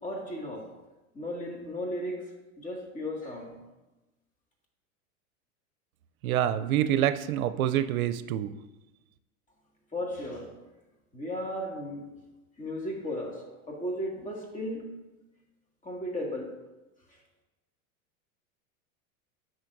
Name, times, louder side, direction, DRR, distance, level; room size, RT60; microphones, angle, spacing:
voice 1, 0.0-0.7 1.1-3.6 9.9-10.5 11.1-12.1 12.6-14.9 15.8-16.6 17.1-17.2, left 1 dB, 20° left, -1 dB, 2.0 m, -35 dB
voice 2, 6.2-8.6, right 11 dB, 90° right, 11 dB, 0.5 m, -26 dB
10.5 x 6.3 x 2.6 m, 1.0 s
hypercardioid pair, 110°, 41 cm